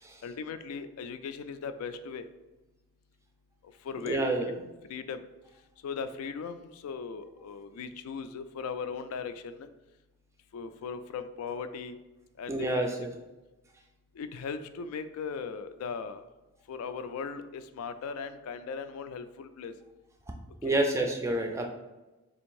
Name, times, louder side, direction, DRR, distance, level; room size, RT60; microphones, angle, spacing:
voice 1, 0.2-2.3 3.8-4.5 4.9-5.2 5.8-9.7 10.5-12.0 12.4-12.9 14.2-16.2 16.7-19.7 20.6-20.8, left 5 dB, 85° left, 10 dB, 0.3 m, -38 dB
voice 2, 4.0-4.5 12.5-13.1 20.6-21.7, right 1 dB, 15° right, 3 dB, 0.3 m, -28 dB
3.4 x 2.6 x 4.6 m, 1.1 s
head